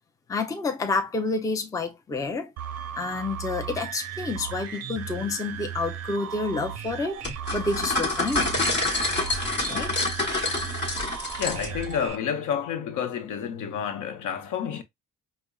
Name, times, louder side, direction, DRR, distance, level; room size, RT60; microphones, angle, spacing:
voice 1, 0.3-2.5 3.0-7.2 7.5-8.6 9.7-10.1, left 3 dB, 10° left, 0.4 m, -29 dB
sound 1, 2.6-12.2, right 9 dB, 50° right, 0.5 m, -36 dB
sound 2, 7.2-11.9, left 2 dB, 30° left, 1.1 m, -27 dB
voice 2, 11.4-14.8, left 8 dB, 65° left, 0.8 m, -30 dB
5.0 x 2.0 x 2.2 m
cardioid pair, 140°, 34 cm